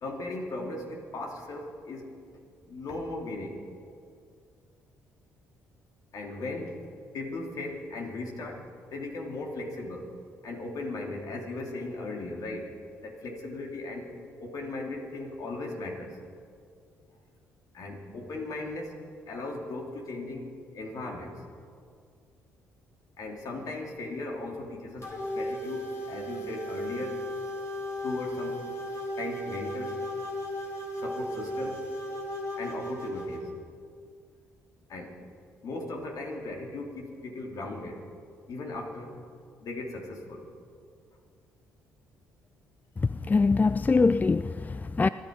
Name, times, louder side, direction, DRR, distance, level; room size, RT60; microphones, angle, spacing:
voice 1, 0.0-2.1 2.6-3.6 6.1-6.8 7.1-10.1 10.4-12.7 13.0-14.1 14.4-16.1 17.7-18.9 19.3-21.4 23.2-27.2 28.0-28.6 29.2-30.0 31.0-31.9 32.6-33.5 34.9-35.1 35.6-38.0 38.5-39.1 39.6-40.4, left 2 dB, 65° left, 2.8 m, -37 dB
sound 1, 25.0-33.4, equal, 45° left, 3.7 m, -35 dB
voice 2, 43.2-45.1, left 4 dB, 25° left, 0.4 m, -23 dB
25.5 x 11.0 x 5.2 m
supercardioid pair, 55°, 6 cm